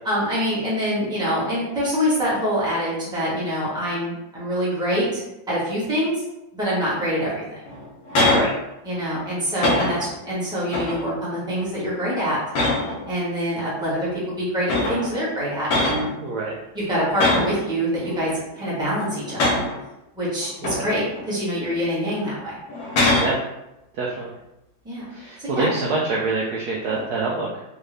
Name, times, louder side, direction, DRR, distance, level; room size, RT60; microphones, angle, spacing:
voice 1, 0.0-6.2 6.5-7.4 8.8-12.4 13.1-16.1 16.7-18.3 18.6-19.6 20.1-22.5 24.8-25.0 25.4-25.7, equal, 5° right, -9 dB, 1.0 m, -25 dB
sound 1, 7.7-8.5 8.9-9.2 9.6-10.2 10.7-11.1 11.5-11.9 12.5-13.1 14.1-14.2 14.7-15.1 15.7-16.1 17.2-17.6 18.1-18.7 19.2-19.8 20.4-21.2 21.7-21.8 22.7-23.4 26.8-27.2, left 2 dB, 80° left, 1.5 m, -23 dB
voice 2, 16.2-16.6 20.7-20.8 23.1-23.4 23.9-24.3 25.1-27.6, right 3 dB, 70° right, -3 dB, 0.9 m, -26 dB
3.6 x 2.5 x 3.2 m, 0.92 s
omnidirectional pair, 2.1 m